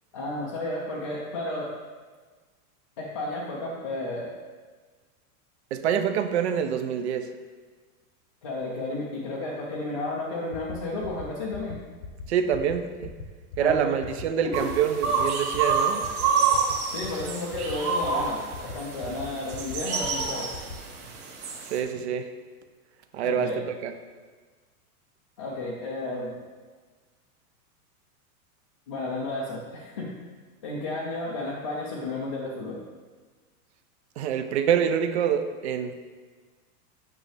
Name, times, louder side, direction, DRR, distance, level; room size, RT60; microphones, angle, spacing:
voice 1, 0.1-1.7 3.0-4.3 8.4-11.8 13.6-14.0 14.6-14.7 16.9-20.5 23.2-23.6 25.4-26.4 28.9-30.1 30.6-32.8, left 2 dB, 25° left, -6 dB, 0.4 m, -32 dB
voice 2, 5.7-7.3 12.3-13.1 13.6-16.0 21.7-22.3 23.1-23.9 34.2-35.9, right 8 dB, 50° right, 9 dB, 0.6 m, -26 dB
sound 1, 10.5-10.8 11.0-11.2 11.5-11.7 12.0-12.2 12.5-12.7 13.0-13.2 13.5-13.7 14.0-14.2 14.5-14.7 15.0-15.2 15.5-15.7 16.0-16.2 16.5-16.7 17.0-17.2 17.5-17.7 18.0-18.2 18.5-18.7 19.0-19.2 19.5-19.8 20.0-20.3 20.5-20.8, left 5 dB, 40° left, 0.8 m, -39 dB
sound 2, 14.5-21.8, right 5 dB, 75° right, 1.8 m, -28 dB
8.8 x 6.0 x 3.3 m, 1.4 s
supercardioid pair, 175°, 45 cm